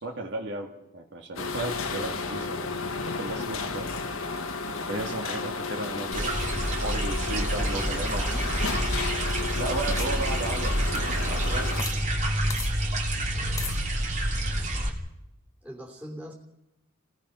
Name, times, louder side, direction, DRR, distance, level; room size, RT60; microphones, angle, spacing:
voice 1, 0.0-2.7 3.1-3.9 4.9-6.5 6.8-8.2 9.5-11.9, right 2 dB, 55° right, 2 dB, 1.9 m, -35 dB
sound 1, 1.4-11.8, left 4 dB, 80° left, 1.7 m, -33 dB
voice 2, 2.0-2.7 7.5-8.5 13.3-13.8 15.6-16.3, equal, 5° right, 0 dB, 2.8 m, -42 dB
sound 2, 6.1-14.9, right 1 dB, 35° right, 2.8 m, -28 dB
sound 3, 8.6-12.0 12.2-12.3 12.5-12.7 13.6-13.8, left 4 dB, 15° left, 1.0 m, -41 dB
28.5 x 17.5 x 5.6 m, 0.90 s
head